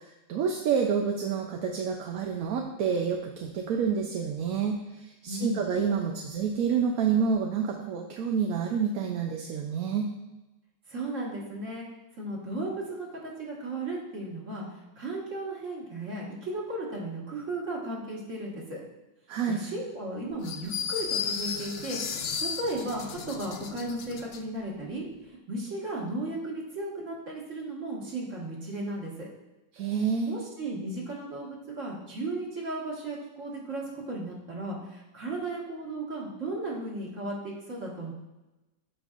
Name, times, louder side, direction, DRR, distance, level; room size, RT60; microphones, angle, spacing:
voice 1, 0.3-10.1 19.3-19.6 29.7-30.3, right 6 dB, 70° right, 1 dB, 1.0 m, -28 dB
voice 2, 5.3-5.6 10.9-11.9 12.2-14.6 15.0-18.8 19.5-29.3 30.3-38.1, right 2 dB, 50° right, -4 dB, 2.1 m, -35 dB
sound 1, 20.4-24.4, left 6 dB, 75° left, 0.5 m, -34 dB
12.0 x 5.3 x 2.5 m, 1.0 s
omnidirectional pair, 1.7 m